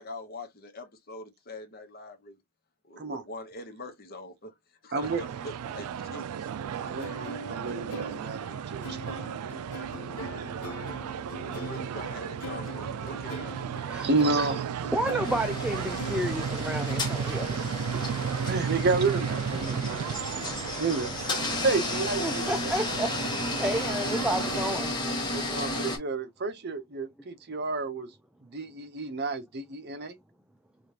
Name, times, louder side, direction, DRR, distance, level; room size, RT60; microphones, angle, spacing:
voice 1, 0.0-2.4 2.8-4.5 4.8-6.5 11.5-13.6 14.1-14.3, left 1 dB, 45° left, 0.9 m, -43 dB
voice 2, 4.9-5.2 6.8-9.3 14.0-14.6 17.9-20.4 20.8-21.1 21.6-22.7 25.3-28.1 28.5-30.2, right 3 dB, 50° right, 0.7 m, -30 dB
sound 1, 5.0-24.8, right 7 dB, 85° right, 0.3 m, -34 dB
sound 2, 7.0-17.0, equal, 90° left, 1.0 m, -42 dB
voice 3, 9.9-10.2 10.5-11.5 13.9-14.1 14.9-17.6 22.2-24.9, right 1 dB, 5° right, 0.3 m, -32 dB
sound 3, 15.2-26.0, left 2 dB, 20° left, 1.0 m, -33 dB
4.9 x 2.4 x 2.8 m
head